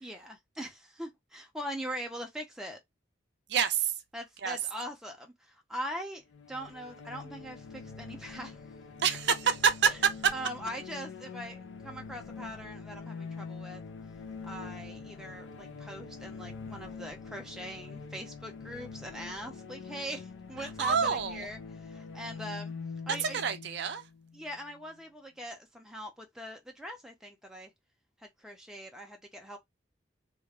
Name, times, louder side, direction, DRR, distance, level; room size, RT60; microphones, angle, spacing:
voice 1, 0.0-2.8 4.1-6.2 6.5-8.6 9.9-10.0 10.3-13.8 14.4-22.7 23.1-23.4 24.3-27.7 28.2-29.6, equal, 5° right, 0.5 m, -42 dB
voice 2, 3.5-3.9 4.4-4.6 9.0-10.3 20.8-21.5 23.2-24.0, right 7 dB, 65° right, 0.4 m, -27 dB
sound 1, 6.3-24.9, left 5 dB, 80° left, 0.4 m, -45 dB
2.4 x 2.0 x 3.3 m
head